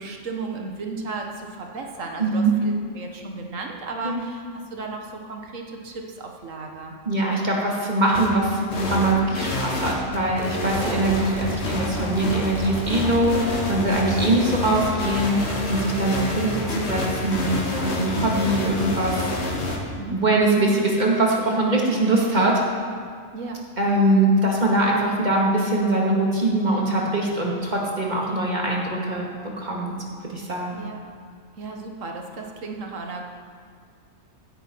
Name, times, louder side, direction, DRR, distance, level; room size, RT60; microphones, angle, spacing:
voice 1, 0.0-4.4 4.7-6.9 20.0-20.2 23.3-23.7 30.7-31.0 31.6-33.2, right 3 dB, 80° right, 2 dB, 1.7 m, -34 dB
voice 2, 2.2-2.5 4.0-4.2 7.1-19.5 20.1-22.6 23.8-29.9 30.2-30.8, right 2 dB, 35° right, -2 dB, 2.2 m, -22 dB
sound 1, 8.1-8.3 8.7-19.8, left 2 dB, 60° left, 1.8 m, -28 dB
15.5 x 9.8 x 4.6 m, 2.1 s
omnidirectional pair, 1.3 m